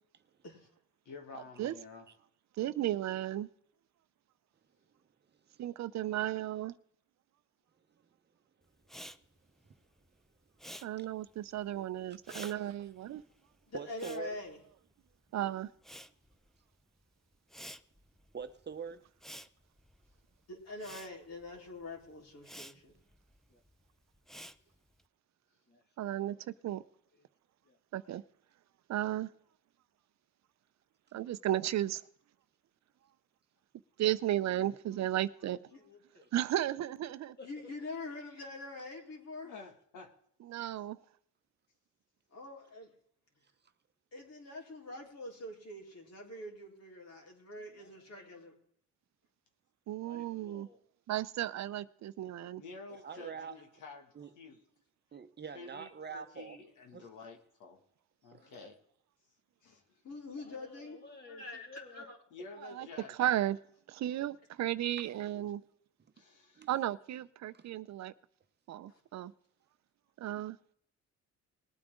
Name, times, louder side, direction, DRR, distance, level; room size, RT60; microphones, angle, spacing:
voice 1, 1.1-2.1 39.4-40.1 52.6-54.6 55.5-57.8 58.2-58.8 59.6-60.0 62.3-63.2 66.2-66.7, left 4 dB, 85° left, 2.2 m, -50 dB
voice 2, 2.6-3.5 5.6-6.7 10.8-13.2 15.3-15.7 26.0-26.8 27.9-28.2 28.9-29.3 31.1-32.0 34.0-35.6 36.3-37.3 40.5-41.0 49.9-50.7 51.1-52.6 62.6-62.9 63.2-63.6 63.9-65.6 66.7-68.1 68.7-69.3 70.2-70.6, right 13 dB, 65° right, 0.6 m, -34 dB
Respiratory sounds, 8.8-15.3 15.6-25.0, equal, ahead, 0.6 m, -52 dB
voice 3, 12.3-12.7 13.7-14.4 18.3-19.1 53.0-53.6 54.1-54.3 55.1-56.6 56.9-57.1 58.3-58.6 65.0-65.1 66.0-66.1 66.5-66.7 67.5-67.8, right 6 dB, 35° right, 0.9 m, -45 dB
voice 4, 13.7-14.6 20.5-22.9 37.4-39.5 42.3-42.9 44.1-48.6 60.0-62.2 68.9-69.0, left 2 dB, 55° left, 4.2 m, -45 dB
voice 5, 25.7-26.9 27.1-27.3 27.6-27.8 34.1-34.2 34.5-36.3 37.4-37.7 44.9-45.1 47.6-48.4 50.0-50.8 58.4-58.7 60.4-62.5 62.8-62.9, left 3 dB, 35° left, 2.4 m, -57 dB
20.0 x 8.7 x 3.8 m
cardioid pair, 90°, 30 cm